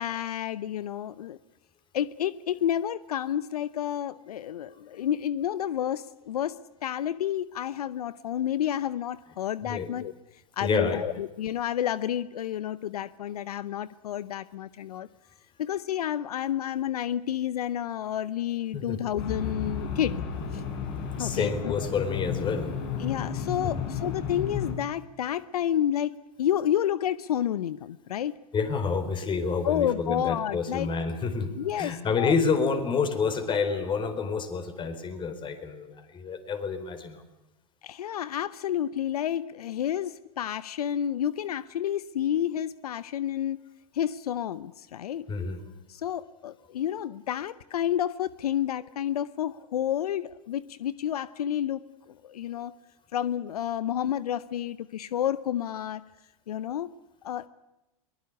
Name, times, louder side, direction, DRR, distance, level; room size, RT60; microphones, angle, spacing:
voice 1, 0.0-1.4 1.9-10.1 10.6-15.1 15.6-20.2 20.5-20.6 21.2-21.7 23.0-26.1 26.4-28.3 29.6-30.9 31.6-32.3 37.8-43.6 43.9-45.3 45.9-51.8 52.2-52.7 53.1-56.0 56.5-56.9 57.2-57.5, left 10 dB, 85° left, 18 dB, 0.8 m, -30 dB
voice 2, 10.6-11.0 18.7-19.0 21.2-22.7 28.5-37.2 45.3-45.6, left 5 dB, 25° left, 9 dB, 4.3 m, -28 dB
sound 1, 19.2-24.7, left 6 dB, 50° left, 6.9 m, -33 dB
22.5 x 20.0 x 9.6 m, 0.95 s
hypercardioid pair, 120°, 19 cm